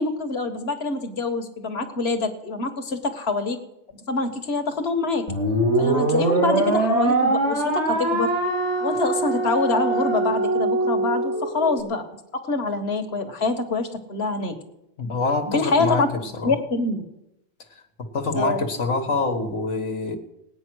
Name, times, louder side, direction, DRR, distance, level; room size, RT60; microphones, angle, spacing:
voice 1, 0.0-3.6 4.1-5.3 5.8-8.3 8.8-12.1 12.3-14.5 15.5-16.1 16.4-17.0 18.3-18.6, left 3 dB, 60° left, 6 dB, 1.7 m, -25 dB
sound 1, 5.3-11.8, right 2 dB, 70° right, 2.4 m, -22 dB
voice 2, 15.0-16.5 17.7-20.2, left 3 dB, 85° left, 5 dB, 1.8 m, -26 dB
18.5 x 9.2 x 6.2 m, 0.87 s
omnidirectional pair, 1.2 m